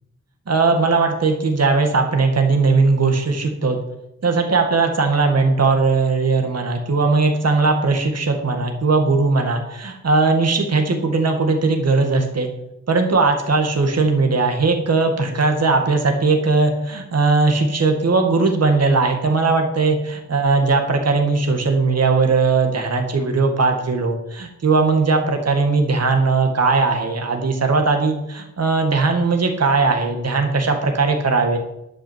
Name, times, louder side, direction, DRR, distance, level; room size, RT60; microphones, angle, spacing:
voice 1, 0.5-3.8 4.2-12.5 12.9-31.6, right 3 dB, 50° right, 4 dB, 2.0 m, -18 dB
11.0 x 8.8 x 7.4 m, 0.85 s
wide cardioid pair, 125°, 32 cm